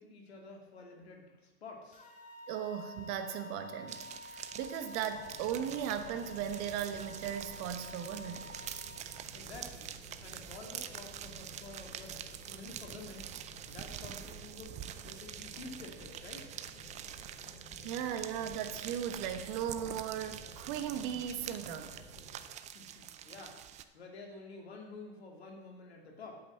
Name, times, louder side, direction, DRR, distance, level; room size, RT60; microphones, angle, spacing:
voice 1, 0.0-2.1 9.1-13.3 13.7-16.5 22.7-26.4, left 3 dB, 90° left, 1 dB, 2.4 m, -50 dB
sound 1, 1.9-9.1, left 2 dB, 25° left, 2.0 m, -50 dB
voice 2, 2.5-4.1 4.3-8.5 17.8-21.9 22.9-23.0, right 9 dB, 45° right, 8 dB, 1.2 m, -37 dB
sound 2, 3.9-23.8, right 10 dB, 25° right, 0.5 m, -46 dB
sound 3, 5.1-22.4, equal, 5° right, 3.0 m, -54 dB
8.5 x 5.5 x 7.6 m, 1.2 s
hypercardioid pair, 115°, 31 cm